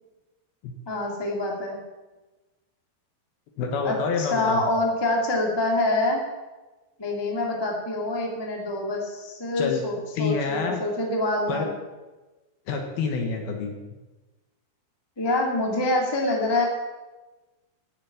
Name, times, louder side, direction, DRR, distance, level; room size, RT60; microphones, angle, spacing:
voice 1, 0.8-1.8 3.8-6.2 7.0-11.7 15.2-16.6, left 2 dB, 10° left, -1 dB, 1.3 m, -26 dB
voice 2, 3.6-4.6 9.6-9.8 10.2-10.8 11.5-11.7 12.7-13.7, left 5 dB, 65° left, 3 dB, 3.2 m, -27 dB
13.0 x 8.0 x 8.7 m, 1.2 s
omnidirectional pair, 5.0 m